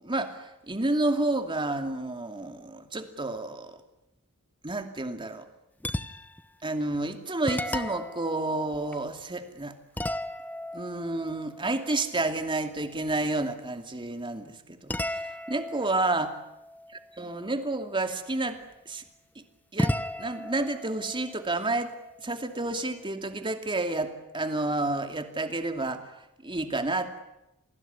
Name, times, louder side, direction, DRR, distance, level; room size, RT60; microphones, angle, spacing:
voice 1, 0.0-3.8 4.6-5.5 6.6-9.7 10.7-16.3 17.2-18.6 18.9-19.0 19.7-26.1 26.4-27.2, right 2 dB, 20° right, 7 dB, 2.6 m, -30 dB
sound 1, 5.8-6.5 6.9-7.0 7.4-9.4 10.0-12.6 14.9-17.5 19.8-22.4, left 1 dB, 5° left, 1.0 m, -35 dB
28.5 x 19.5 x 9.7 m, 0.90 s
head